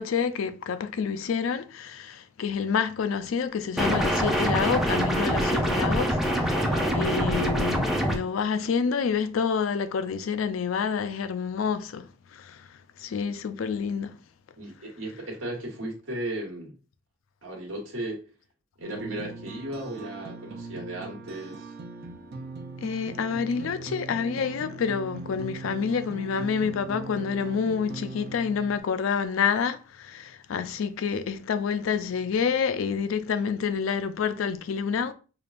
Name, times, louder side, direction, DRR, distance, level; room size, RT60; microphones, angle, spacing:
voice 1, 0.0-14.2 15.1-15.2 22.8-35.1, left 6 dB, 80° left, 0.4 m, -28 dB
sound 1, 3.8-8.2, equal, ahead, 0.5 m, -25 dB
voice 2, 6.7-7.2 14.6-16.7 17.4-18.2 18.8-21.7, right 1 dB, 85° right, 1.4 m, -36 dB
sound 2, 18.8-28.8, right 3 dB, 55° right, 0.5 m, -40 dB
4.9 x 2.2 x 2.5 m
head